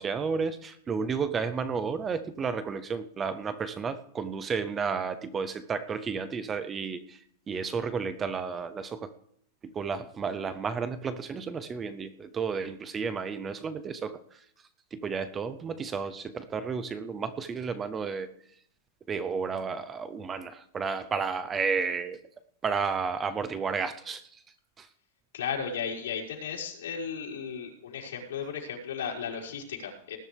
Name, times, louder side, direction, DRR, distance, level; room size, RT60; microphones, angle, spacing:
voice 1, 0.0-7.2 7.5-9.1 9.6-14.2 14.9-18.3 19.1-22.2 22.6-24.2 24.8-24.9, right 5 dB, 10° right, 12 dB, 0.5 m, -32 dB
voice 2, 25.3-30.2, left 6 dB, 85° left, -3 dB, 5.3 m, -35 dB
19.5 x 10.5 x 3.3 m, 0.67 s
supercardioid pair, 180°, 0 cm